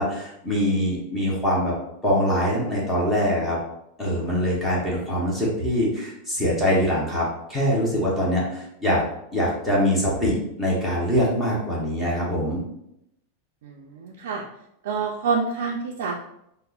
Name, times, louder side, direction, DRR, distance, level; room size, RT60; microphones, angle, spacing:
voice 1, 0.0-1.7 2.0-3.6 4.0-9.0 9.3-12.6, equal, 10° left, -6 dB, 0.7 m, -23 dB
voice 2, 13.6-14.5 14.8-16.2, right 5 dB, 70° right, -1 dB, 0.4 m, -27 dB
5.2 x 2.0 x 2.3 m, 0.81 s
supercardioid pair, 180°, 0 cm